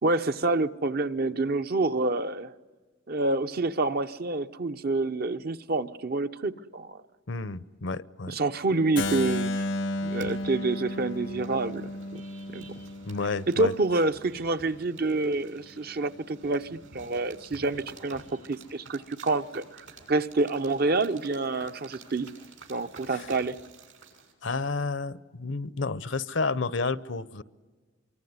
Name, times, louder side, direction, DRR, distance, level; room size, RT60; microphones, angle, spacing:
voice 1, 0.0-2.5 3.1-7.0 8.3-9.6 10.0-12.2 12.5-12.7 13.5-18.2 18.5-22.3 22.7-23.6, right 2 dB, 55° right, 10 dB, 0.8 m, -28 dB
voice 2, 7.3-8.3 13.0-13.7 23.1-23.3 24.4-27.4, left 3 dB, 70° left, 18 dB, 0.8 m, -31 dB
Keyboard (musical), 9.0-14.8, left 1 dB, 85° left, 1.2 m, -34 dB
sound 1, 9.9-24.3, right 3 dB, 90° right, 7.1 m, -51 dB
25.5 x 24.0 x 9.5 m, 1.3 s
head